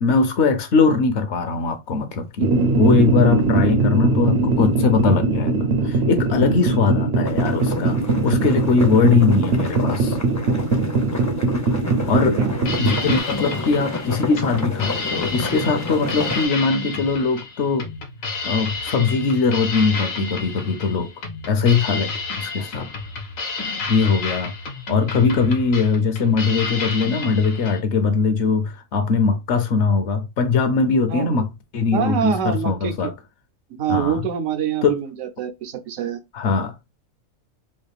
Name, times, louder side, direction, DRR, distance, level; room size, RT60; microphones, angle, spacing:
voice 1, 0.0-2.5 2.8-10.2 12.1-12.4 12.8-17.9 18.5-21.1 21.5-22.9 23.9-24.5 24.9-31.5 31.7-33.1 33.9-34.2 34.8-35.0 36.3-36.7, left 4 dB, 65° left, 0.9 m, -20 dB
sound 1, 2.4-13.2, right 3 dB, 60° right, 0.7 m, -21 dB
sound 2, 7.2-16.5, left 2 dB, 25° left, 0.3 m, -30 dB
sound 3, 12.5-27.8, left 4 dB, 90° left, 1.3 m, -31 dB
voice 2, 31.1-31.4 31.9-33.1 33.7-36.2, right 8 dB, 85° right, 1.1 m, -25 dB
3.2 x 2.5 x 3.3 m
omnidirectional pair, 1.4 m